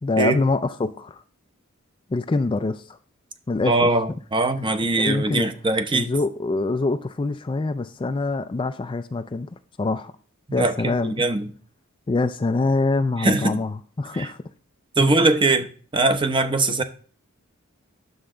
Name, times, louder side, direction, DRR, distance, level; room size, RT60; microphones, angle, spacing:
voice 1, 0.0-1.2 2.1-3.0 3.5-3.9 5.0-5.5 5.9-9.5 9.8-10.1 10.5-11.2 12.1-14.4 15.0-15.3, left 3 dB, 25° left, 0.4 m, -25 dB
voice 2, 3.6-6.1 10.5-11.5 13.2-13.6 14.1-14.3 15.0-16.8, right 2 dB, 25° right, 0.8 m, -21 dB
9.5 x 7.0 x 3.8 m
head